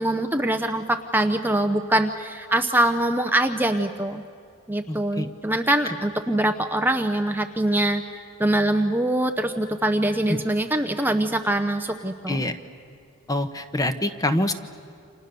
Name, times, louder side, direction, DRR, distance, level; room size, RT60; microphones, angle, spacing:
voice 1, 0.0-4.2 4.7-12.4, right 1 dB, 10° right, 6 dB, 0.8 m, -23 dB
voice 2, 4.9-5.3 10.3-10.4 12.3-12.6 13.3-14.5, left 1 dB, 15° left, 9 dB, 1.1 m, -25 dB
29.5 x 27.0 x 6.9 m, 2.4 s
head